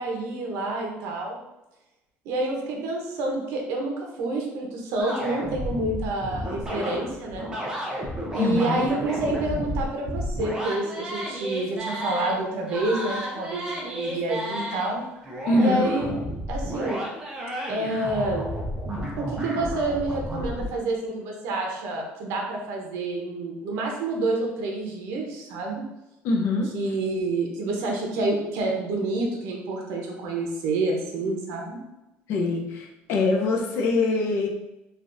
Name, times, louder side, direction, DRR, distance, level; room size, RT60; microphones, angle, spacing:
voice 1, 0.0-1.4 2.2-7.5 8.3-15.0 15.6-16.1 16.5-17.0 17.7-18.5 19.2-25.8 26.7-31.8, right 2 dB, 80° right, 0 dB, 0.7 m, -28 dB
sound 1, 5.0-12.3 12.7-14.9 15.2-20.7, equal, 15° right, 0.6 m, -32 dB
voice 2, 8.4-8.8 15.5-15.9 26.2-26.7 32.3-34.5, left 3 dB, 60° left, 1 dB, 0.5 m, -23 dB
3.3 x 2.4 x 2.6 m, 0.94 s
cardioid pair, 165°, 5 cm